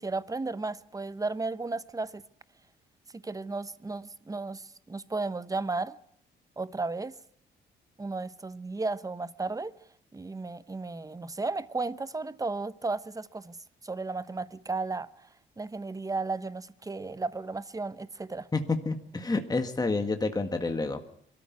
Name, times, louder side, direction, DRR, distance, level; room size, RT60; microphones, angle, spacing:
voice 1, 0.0-2.2 3.1-6.0 6.6-7.1 8.0-9.7 10.1-13.6 13.8-15.3 15.6-18.5, right 3 dB, 15° right, 0.9 m, -34 dB
voice 2, 18.5-21.0, left 3 dB, 20° left, 1.8 m, -29 dB
23.0 x 13.5 x 9.5 m
cardioid pair, 90°, 20 cm